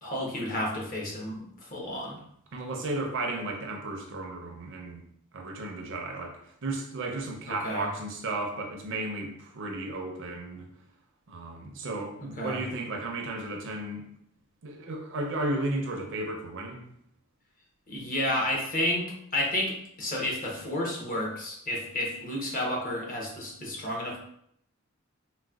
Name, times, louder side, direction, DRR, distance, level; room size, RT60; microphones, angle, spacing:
voice 1, 0.0-2.2 7.6-7.9 12.4-12.6 17.9-24.2, left 1 dB, 40° left, -3 dB, 0.8 m, -31 dB
voice 2, 2.5-5.0 5.3-10.7 11.3-14.1 14.6-16.9, right 2 dB, 60° right, 1 dB, 0.5 m, -34 dB
4.0 x 2.1 x 2.3 m, 0.70 s
head